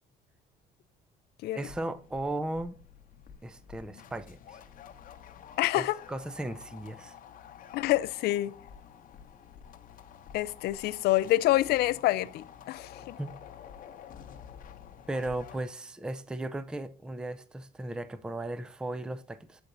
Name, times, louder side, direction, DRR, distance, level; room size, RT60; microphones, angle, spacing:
sound 1, 1.6-15.6, left 8 dB, 55° left, 0.8 m, -50 dB
voice 1, 1.6-2.7 3.4-4.6 5.8-7.2 13.2-13.3 15.1-19.6, right 2 dB, 5° right, 0.4 m, -36 dB
voice 2, 5.6-6.0 7.7-8.5 10.3-13.2, left 16 dB, 75° left, 0.4 m, -27 dB
7.9 x 4.3 x 3.9 m
cardioid pair, 110°, 17 cm